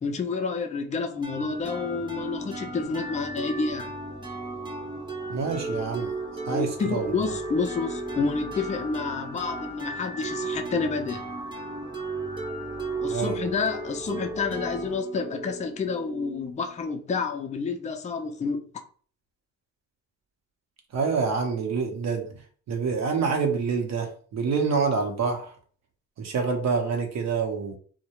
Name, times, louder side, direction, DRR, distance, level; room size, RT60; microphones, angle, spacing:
voice 1, 0.0-3.9 6.5-11.2 13.0-18.6, left 4 dB, 25° left, 0.4 m, -29 dB
sound 1, 1.2-16.8, right 2 dB, 15° right, 0.7 m, -35 dB
voice 2, 5.3-6.1 6.5-7.3 13.1-13.4 20.9-22.3 22.7-25.5 26.2-27.8, right 5 dB, 60° right, 0.7 m, -27 dB
2.3 x 2.1 x 2.8 m
cardioid pair, 90°, 30 cm